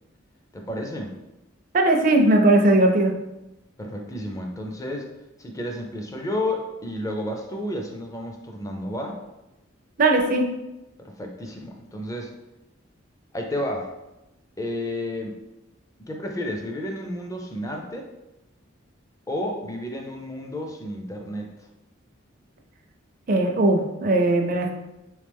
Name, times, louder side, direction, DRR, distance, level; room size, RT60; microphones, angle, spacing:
voice 1, 0.5-1.1 3.8-5.1 5.4-9.2 11.0-12.3 13.3-13.9 14.6-15.4 16.1-18.1 19.3-21.5, left 1 dB, 15° left, 2 dB, 0.5 m, -31 dB
voice 2, 1.7-3.1 10.0-10.5 23.3-24.7, right 2 dB, 45° right, 3 dB, 0.5 m, -19 dB
3.6 x 3.2 x 3.4 m, 0.96 s
head